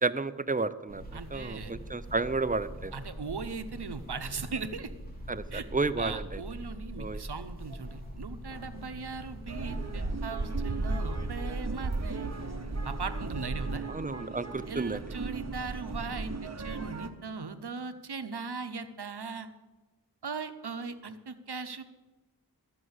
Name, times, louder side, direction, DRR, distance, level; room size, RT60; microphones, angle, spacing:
voice 1, 0.0-1.0 1.3-2.9 5.3-6.4 7.0-7.2 13.9-15.0, right 3 dB, 20° right, 13 dB, 0.5 m, -31 dB
sound 1, 0.9-13.5, equal, 25° left, 2.7 m, -44 dB
voice 2, 1.1-1.7 2.9-4.9 5.5-5.6 6.0-12.3 12.8-13.9 14.7-19.5 20.2-21.8, right 4 dB, 85° right, 9 dB, 0.8 m, -39 dB
sound 2, 9.5-17.1, right 3 dB, 45° right, 0.9 m, -35 dB
13.0 x 6.2 x 8.0 m, 1.2 s
wide cardioid pair, 45°, 38 cm